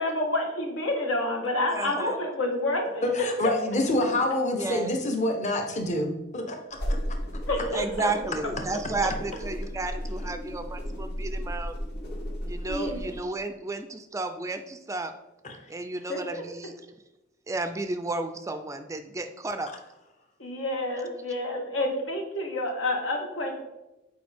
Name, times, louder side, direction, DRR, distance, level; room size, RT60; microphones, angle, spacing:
voice 1, 0.0-3.1 3.4-3.5 7.5-8.1 12.7-13.0 16.1-16.4 20.4-23.6, left 1 dB, 80° left, 2 dB, 1.3 m, -29 dB
voice 2, 1.7-2.2 4.6-4.9 7.7-11.8 12.4-15.1 15.7-16.7 17.5-19.7, right 2 dB, 15° right, 8 dB, 0.3 m, -32 dB
voice 3, 3.0-6.8 7.1-7.2 15.4-15.6, left 1 dB, 40° left, 4 dB, 0.9 m, -27 dB
sound 1, 6.7-13.2, equal, 60° left, 1.8 m, -34 dB
7.7 x 4.6 x 3.5 m, 0.97 s
head